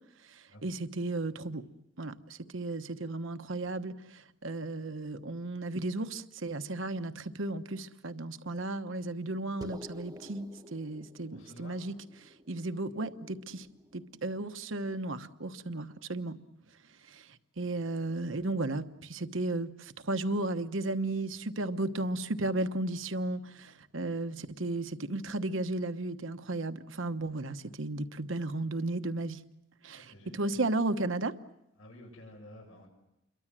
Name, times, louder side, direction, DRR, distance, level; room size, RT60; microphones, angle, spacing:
voice 1, 0.3-1.6 2.0-11.9 12.5-13.7 13.9-16.4 17.1-17.3 17.6-29.4 29.8-31.3, right 2 dB, 65° right, 9 dB, 1.1 m, -34 dB
sound 1, 9.6-14.4, equal, 20° right, 1.0 m, -50 dB
voice 2, 11.3-11.9 29.9-30.6 31.8-32.9, left 1 dB, 80° left, 0 dB, 6.8 m, -51 dB
27.5 x 23.5 x 7.6 m, 0.87 s
head